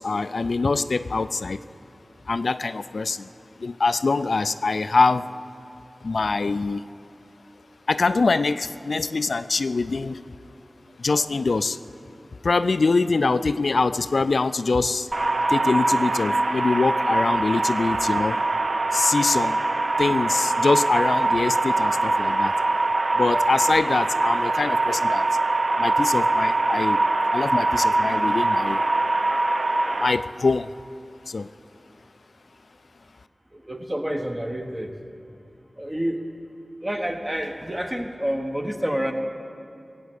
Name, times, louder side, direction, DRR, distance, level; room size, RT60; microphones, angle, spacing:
voice 1, 0.0-1.6 2.3-3.3 3.6-5.3 6.0-6.9 7.9-10.2 11.0-11.8 12.4-15.1 15.5-18.4 18.9-19.6 20.0-22.5 23.1-25.3 25.8-27.0 27.3-28.8 29.9-30.7 31.3-31.5, left 3 dB, 80° left, 13 dB, 0.3 m, -24 dB
sound 1, 15.1-30.1, right 2 dB, 60° right, 0.6 m, -23 dB
voice 2, 33.5-35.0 35.8-36.3 36.8-39.1, equal, 20° right, 4 dB, 1.3 m, -28 dB
17.5 x 7.8 x 8.2 m, 2.7 s
wide cardioid pair, 65°, 0 cm